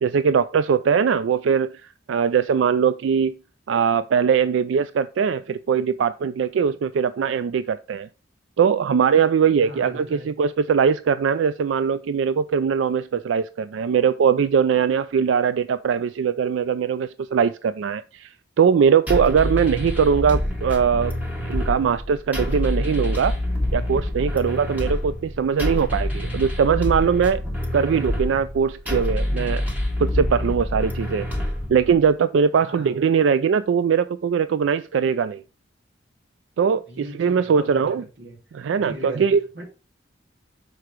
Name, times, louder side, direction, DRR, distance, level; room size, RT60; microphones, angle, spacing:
voice 1, 0.0-3.4 3.7-8.1 8.6-21.2 21.4-23.3 23.7-27.4 27.7-29.6 30.0-31.3 31.7-35.4 36.6-38.0 38.5-39.4, right 6 dB, 80° right, 0.3 m, -21 dB
voice 2, 9.6-10.3 32.6-32.9 36.9-38.4 38.8-39.7, right 1 dB, 65° right, 2.2 m, -38 dB
sound 1, 19.1-32.1, left 1 dB, 10° right, 1.5 m, -26 dB
6.7 x 4.8 x 4.5 m
head